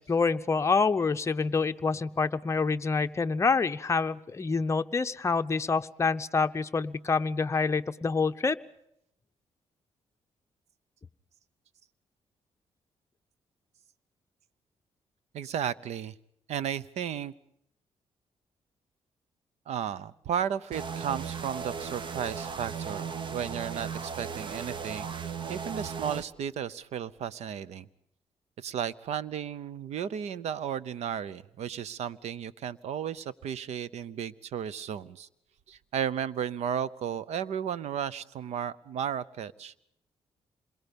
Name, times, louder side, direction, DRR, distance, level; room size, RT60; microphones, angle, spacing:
voice 1, 0.0-8.6, left 4 dB, 25° left, 8 dB, 0.8 m, -27 dB
voice 2, 15.3-16.1 16.5-17.3 19.7-27.9 28.6-35.3 35.7-39.8, right 8 dB, 80° right, 17 dB, 0.8 m, -34 dB
sound 1, 20.7-26.2, right 6 dB, 45° right, 1.0 m, -36 dB
27.0 x 22.0 x 5.3 m, 0.74 s
cardioid pair, 115°, 11 cm